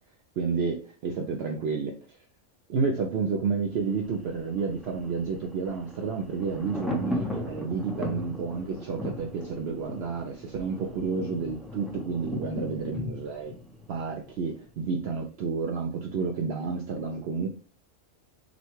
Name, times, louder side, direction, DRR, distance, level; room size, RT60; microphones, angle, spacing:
voice 1, 0.4-2.2 2.7-13.5 13.9-17.5, right 5 dB, 65° right, 2 dB, 0.7 m, -30 dB
Thunder, 3.8-14.7 15.0-15.1, left 1 dB, ahead, 0.5 m, -37 dB
6.2 x 2.3 x 3.0 m, 0.40 s
omnidirectional pair, 1.3 m